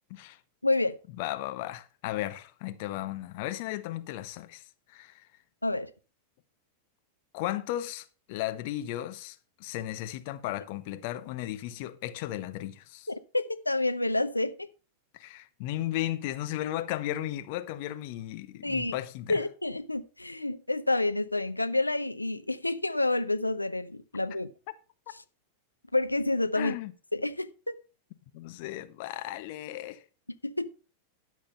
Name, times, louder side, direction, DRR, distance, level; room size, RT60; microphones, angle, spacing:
voice 1, 0.6-0.9 5.6-5.9 13.1-14.5 18.6-18.9 19.3-24.5 25.9-26.8 27.1-27.7 30.4-30.7, left 2 dB, 85° left, 0.6 m, -28 dB
voice 2, 1.2-5.3 7.3-13.1 15.1-19.4 26.5-26.9 28.3-30.0, left 14 dB, 50° left, 0.9 m, -35 dB
12.5 x 5.4 x 5.3 m
figure-of-eight pair, 90°, 0 cm